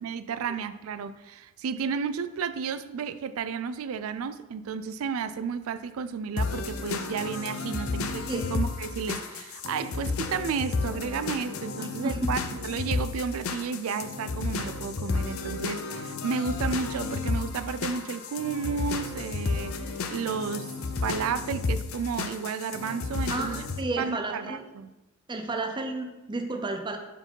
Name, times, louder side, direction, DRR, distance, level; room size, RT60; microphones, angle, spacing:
voice 1, 0.0-20.7 21.0-23.6 24.0-24.9, right 6 dB, 75° right, 0.4 m, -32 dB
sound 1, 6.4-23.8, left 4 dB, 75° left, 0.5 m, -32 dB
voice 2, 11.8-12.3 23.3-24.6 25.3-27.0, right 2 dB, 20° right, 0.6 m, -32 dB
4.6 x 4.5 x 5.5 m
head